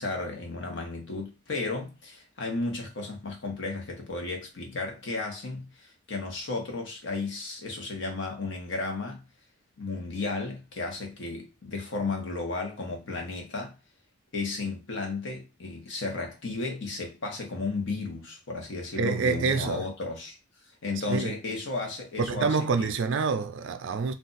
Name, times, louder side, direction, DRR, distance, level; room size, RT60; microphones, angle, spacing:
voice 1, 0.0-9.2 9.8-13.8 14.3-20.4 20.8-22.9, left 3 dB, 60° left, 0.9 m, -34 dB
voice 2, 19.0-19.9 21.1-21.3 22.2-24.1, right 4 dB, 60° right, 0.4 m, -27 dB
2.5 x 2.3 x 3.9 m
head